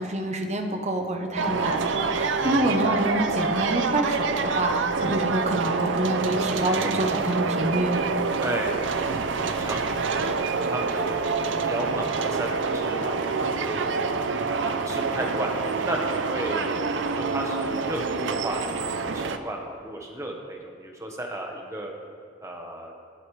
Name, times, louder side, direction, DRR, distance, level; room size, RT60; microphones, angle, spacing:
voice 1, 0.0-8.1, right 1 dB, 35° right, 4 dB, 1.0 m, -27 dB
sound 1, 1.4-19.4, right 4 dB, 75° right, 0.6 m, -27 dB
voice 2, 2.4-3.0 8.4-11.3 11.7-13.9 14.5-15.5 15.8-21.9 22.4-22.9, right 1 dB, 15° right, 1 dB, 1.3 m, -34 dB
20.0 x 8.3 x 3.3 m, 2.3 s
head